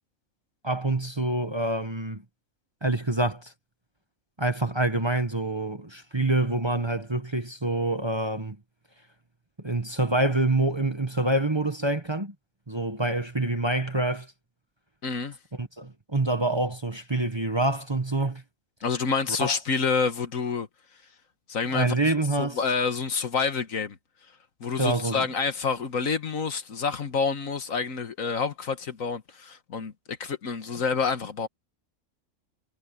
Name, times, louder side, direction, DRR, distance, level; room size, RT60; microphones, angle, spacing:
voice 1, 0.6-2.2 2.8-3.5 4.4-8.6 9.6-12.3 12.7-14.3 15.6-18.4 19.4-19.6 21.7-22.6 24.8-25.3, right 2 dB, 20° right, 1.3 m, -26 dB
voice 2, 15.0-15.4 18.8-20.7 21.5-21.9 22.4-24.0 24.6-29.9 30.2-31.5, left 5 dB, 65° left, 1.8 m, -28 dB
omnidirectional pair, 1.5 m